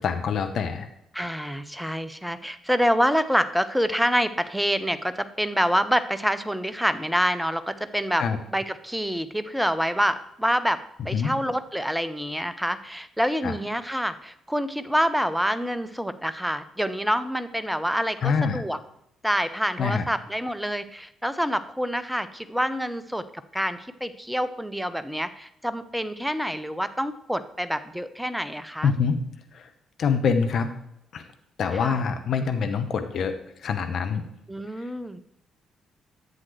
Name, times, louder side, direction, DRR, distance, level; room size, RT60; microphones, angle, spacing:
voice 1, 0.0-0.9 8.2-8.4 11.1-11.3 13.4-13.5 18.2-18.6 19.8-20.1 28.8-29.2 29.5-29.7 30.0-30.7 31.1-31.2 31.6-33.3 33.6-34.2 34.8-34.9, left 6 dB, 55° left, 7 dB, 0.9 m, -25 dB
voice 2, 1.1-8.2 8.5-18.8 19.2-23.2 23.5-28.9 31.7-32.0 34.5-35.2, equal, 5° right, 13 dB, 0.7 m, -27 dB
10.5 x 7.7 x 3.2 m, 0.78 s
figure-of-eight pair, 45°, 0 cm